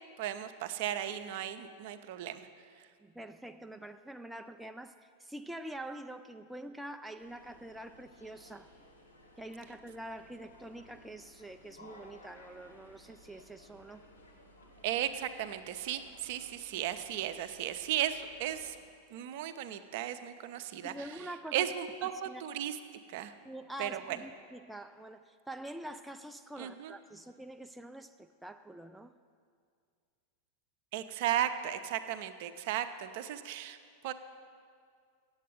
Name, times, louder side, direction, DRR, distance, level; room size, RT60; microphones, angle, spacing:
voice 1, 0.2-2.4 14.8-18.8 19.1-20.9 21.5-22.8 23.1-23.3 23.8-24.2 26.6-26.9 30.9-33.8 34.0-34.1, right 11 dB, 50° right, 10 dB, 0.5 m, -35 dB
voice 2, 3.0-8.7 9.3-14.1 20.8-21.7 22.0-22.4 23.4-29.1, right 1 dB, 5° right, 8 dB, 0.3 m, -46 dB
sound 1, 7.2-18.8, left 1 dB, 75° left, 1.6 m, -58 dB
8.3 x 7.9 x 7.8 m, 2.2 s
figure-of-eight pair, 90°, 0 cm